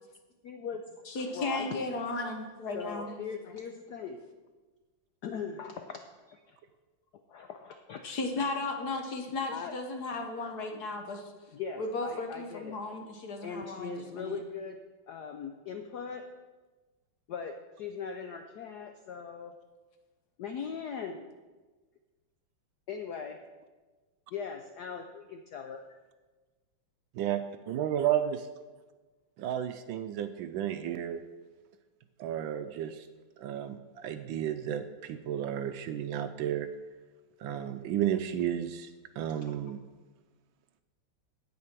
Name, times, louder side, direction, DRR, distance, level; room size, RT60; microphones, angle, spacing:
voice 1, 0.4-0.8 1.2-2.0 2.7-4.2 5.2-6.0 6.3-6.6 7.3-8.0 9.5-9.7 11.5-12.8 13.4-14.8 15.1-16.3 17.3-19.5 20.4-21.3 22.9-23.4 24.3-26.0 39.4-39.5, left 6 dB, 75° left, 6 dB, 0.9 m, -40 dB
voice 2, 1.1-3.2 3.4-3.5 8.0-11.3 11.8-14.4, left 2 dB, 55° left, 4 dB, 1.4 m, -35 dB
voice 3, 27.2-28.5 29.4-31.2 32.2-33.0 33.4-36.7 37.4-38.9 39.2-39.8, right 10 dB, 75° right, 10 dB, 1.2 m, -32 dB
9.5 x 8.6 x 5.9 m, 1.3 s
omnidirectional pair, 2.4 m